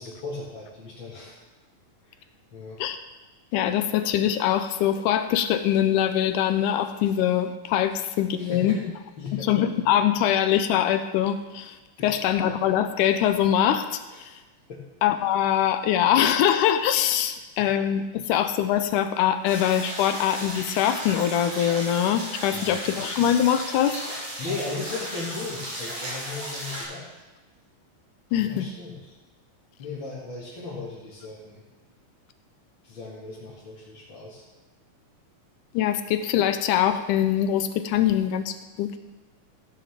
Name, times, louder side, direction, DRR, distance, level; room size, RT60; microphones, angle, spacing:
voice 1, 0.0-1.4 2.0-2.2 2.5-2.8 8.4-8.8 9.2-9.5 12.0-12.3 14.1-14.4 14.7-14.8 17.4-17.7 22.5-22.8 24.4-27.2 28.4-29.0 29.8-31.6 32.8-34.4, left 4 dB, 40° left, -9 dB, 2.7 m, -37 dB
voice 2, 3.5-8.8 9.3-11.8 12.0-14.0 15.0-24.0 28.3-28.7 35.7-38.9, left 10 dB, 80° left, 9 dB, 2.1 m, -23 dB
sound 1, 19.4-26.8, equal, 85° right, 6.8 m, -35 dB
15.0 x 10.0 x 3.7 m, 1.1 s
omnidirectional pair, 3.8 m